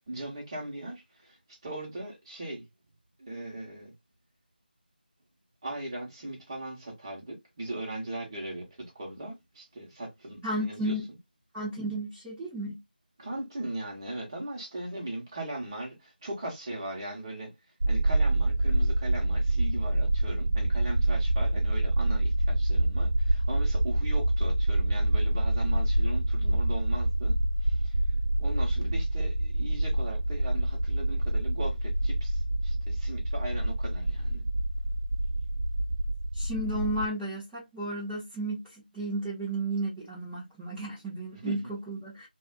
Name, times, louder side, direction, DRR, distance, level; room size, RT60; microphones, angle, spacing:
voice 1, 0.0-2.7 3.2-3.9 5.6-11.2 13.2-28.0 28.4-34.5 41.3-41.7, right 1 dB, 25° right, 0.9 m, -39 dB
voice 2, 10.4-11.0 11.5-12.8 36.3-38.6 38.9-42.3, right 1 dB, 5° right, 0.4 m, -33 dB
sound 1, 17.8-37.1, right 1 dB, 85° right, 0.3 m, -26 dB
2.5 x 2.2 x 2.3 m
figure-of-eight pair, 170°, 5 cm